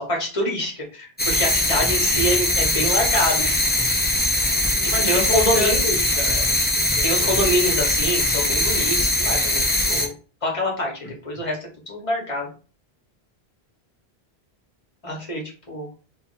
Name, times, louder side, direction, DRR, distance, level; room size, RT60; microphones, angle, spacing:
voice 1, 0.0-3.6 4.8-6.0 7.0-10.1 10.4-12.5 15.0-15.9, equal, 30° left, -1 dB, 1.3 m, -25 dB
sound 1, 1.2-10.1, left 1 dB, 10° left, 0.5 m, -21 dB
voice 2, 4.7-7.5, left 1 dB, 65° left, 0 dB, 1.0 m, -31 dB
2.8 x 2.7 x 4.0 m, 0.37 s
omnidirectional pair, 1.1 m